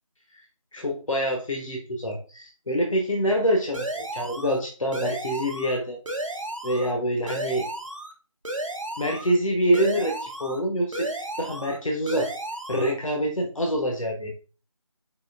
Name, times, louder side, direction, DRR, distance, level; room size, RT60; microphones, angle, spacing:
voice 1, 0.7-6.0 6.6-7.7 9.0-11.1 11.4-12.3 12.7-14.3, equal, 65° left, 1 dB, 0.9 m, -26 dB
sound 1, 3.7-4.6 4.9-5.8 6.1-6.9 7.3-8.1 8.4-9.3 9.7-10.6 10.9-11.8 12.1-12.9, right 1 dB, 60° right, 0.8 m, -33 dB
5.0 x 2.8 x 2.4 m, 0.36 s
figure-of-eight pair, 180°, 18 cm